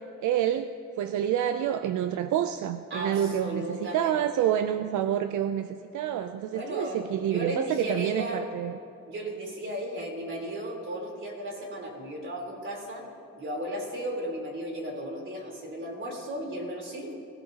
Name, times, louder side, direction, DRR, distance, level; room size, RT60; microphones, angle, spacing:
voice 1, 0.2-8.8, right 10 dB, 80° right, 10 dB, 0.6 m, -28 dB
voice 2, 2.9-4.4 6.5-8.5 9.1-13.1 13.4-17.1, equal, 40° right, 0 dB, 3.8 m, -35 dB
24.5 x 16.5 x 2.9 m, 2.7 s
cardioid pair, 90°, 30 cm